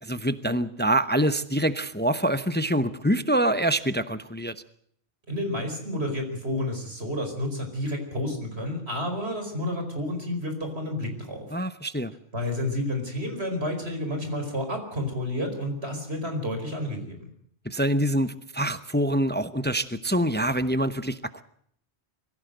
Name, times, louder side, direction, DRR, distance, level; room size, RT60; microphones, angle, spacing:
voice 1, 0.0-4.5 11.5-12.1 17.6-21.4, right 1 dB, 10° left, 12 dB, 0.7 m, -25 dB
voice 2, 5.3-11.5 12.3-17.3, left 1 dB, 75° right, 5 dB, 5.1 m, -30 dB
23.0 x 16.0 x 7.9 m, 0.65 s
omnidirectional pair, 1.1 m